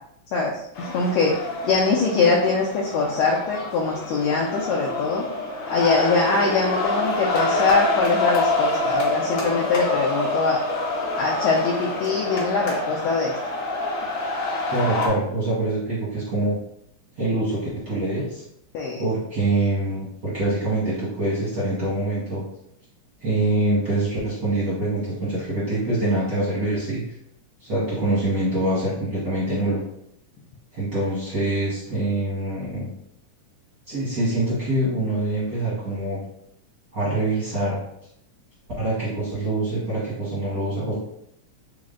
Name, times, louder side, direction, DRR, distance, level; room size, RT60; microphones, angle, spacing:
voice 1, 0.3-1.4 1.6-5.2 5.7-10.6 11.2-13.4 18.7-19.0, left 4 dB, 85° left, -3 dB, 1.5 m, -22 dB
sound 1, 0.8-15.1, left 2 dB, 60° left, 1.4 m, -26 dB
voice 2, 14.7-16.6 17.2-18.4 19.0-22.4 23.2-27.0 27.6-29.8 30.7-32.9 33.9-36.2 36.9-37.8 38.8-40.9, right 2 dB, 60° right, -8 dB, 0.9 m, -25 dB
4.9 x 2.0 x 3.7 m, 0.73 s
omnidirectional pair, 3.6 m